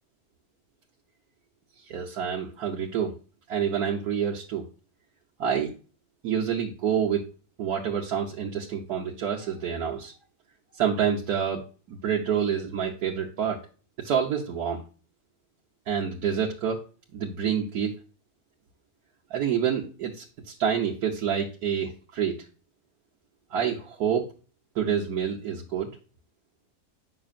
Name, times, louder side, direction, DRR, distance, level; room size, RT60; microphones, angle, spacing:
voice 1, 1.8-3.1 3.5-4.7 5.4-5.7 6.2-7.3 7.6-10.1 10.7-11.6 11.9-13.6 14.0-14.8 15.9-16.8 17.1-17.9 19.3-22.4 23.5-24.3 24.7-25.9, right 8 dB, 85° right, -2 dB, 1.5 m, -27 dB
8.7 x 6.0 x 2.5 m, 0.37 s
omnidirectional pair, 1.6 m